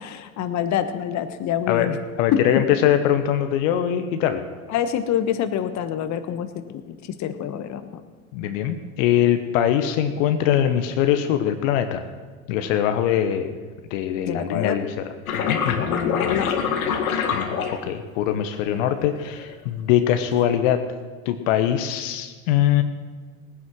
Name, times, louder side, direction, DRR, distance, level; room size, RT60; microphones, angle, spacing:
voice 1, 0.0-2.0 2.3-2.4 4.7-8.0 14.3-14.8 15.8-16.5, left 9 dB, 40° left, 9 dB, 1.3 m, -26 dB
voice 2, 1.7-4.4 8.3-12.0 12.5-13.5 13.9-15.1 15.3-15.9 17.3-20.8 21.2-22.8, left 10 dB, 65° left, 8 dB, 1.2 m, -22 dB
sound 1, 15.3-18.3 19.1-19.5, left 7 dB, 80° left, 1.9 m, -25 dB
18.0 x 9.8 x 6.3 m, 1.4 s
hypercardioid pair, 85°, 42 cm